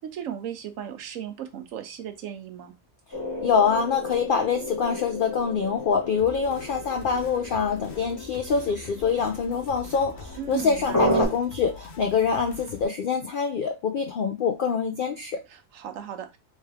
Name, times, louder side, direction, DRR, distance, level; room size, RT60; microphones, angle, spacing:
voice 1, 0.0-2.7 10.4-11.2 15.5-16.4, right 9 dB, 70° right, 1.0 m, -36 dB
sound 1, 3.1-11.2, equal, 15° left, 1.9 m, -32 dB
voice 2, 3.4-15.4, left 6 dB, 80° left, 0.4 m, -25 dB
sound 2, 6.2-12.8, left 4 dB, 55° left, 0.9 m, -44 dB
3.3 x 3.3 x 3.3 m
omnidirectional pair, 1.5 m